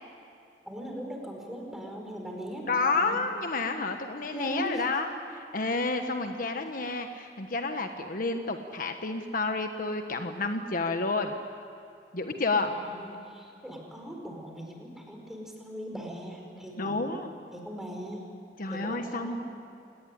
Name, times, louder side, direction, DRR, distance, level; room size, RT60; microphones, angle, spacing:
voice 1, 0.7-3.2 4.3-4.8 12.6-17.2 17.5-18.2 18.7-19.5, right 1 dB, 5° right, 1 dB, 4.8 m, -40 dB
voice 2, 2.7-11.3 12.1-12.7 16.8-17.3 18.6-19.4, left 3 dB, 50° left, 6 dB, 1.3 m, -30 dB
28.5 x 19.0 x 10.0 m, 2.5 s
head